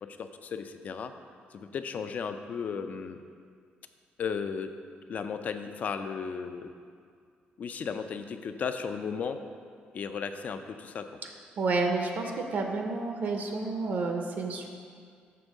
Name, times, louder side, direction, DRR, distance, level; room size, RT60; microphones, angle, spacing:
voice 1, 0.0-1.1 1.5-3.2 4.2-4.7 5.1-6.7 7.6-9.4 9.9-11.1, left 6 dB, 50° left, 8 dB, 0.4 m, -35 dB
voice 2, 11.6-14.7, right 3 dB, 60° right, 3 dB, 0.6 m, -30 dB
6.8 x 3.5 x 6.2 m, 2.1 s
cardioid pair, 125°, 3 cm